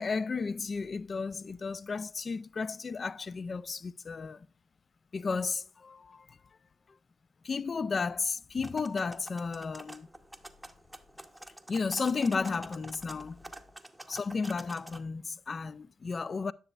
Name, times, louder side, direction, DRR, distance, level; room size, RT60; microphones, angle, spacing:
voice 1, 0.0-4.5 5.1-6.4 7.4-10.1 11.7-13.5 14.1-16.5, left 4 dB, 40° left, 0.3 m, -33 dB
sound 1, 8.6-15.0, right 1 dB, 5° right, 0.8 m, -48 dB
9.9 x 6.7 x 2.4 m
cardioid pair, 70°, 0 cm